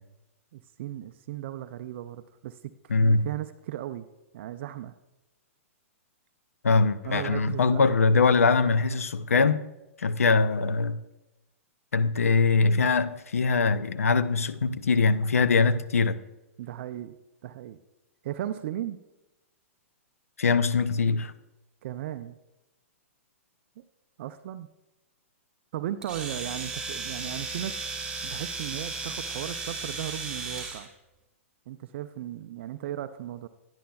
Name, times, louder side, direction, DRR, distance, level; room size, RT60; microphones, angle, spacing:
voice 1, 0.5-4.1 4.3-4.9 7.0-7.8 16.6-17.2 17.4-17.8 18.2-19.0 21.8-22.4 23.8-23.9 24.2-24.7 25.7-27.8 28.2-30.9 31.7-33.5, right 12 dB, 55° right, 0.4 m, -36 dB
voice 2, 2.9-3.3 6.6-9.6 10.0-11.0 11.9-16.2 20.4-21.3, left 4 dB, 90° left, 0.4 m, -22 dB
Domestic sounds home sounds, 26.0-30.9, right 4 dB, 10° right, 2.3 m, -35 dB
10.5 x 10.0 x 2.3 m
hypercardioid pair, 120°, 8 cm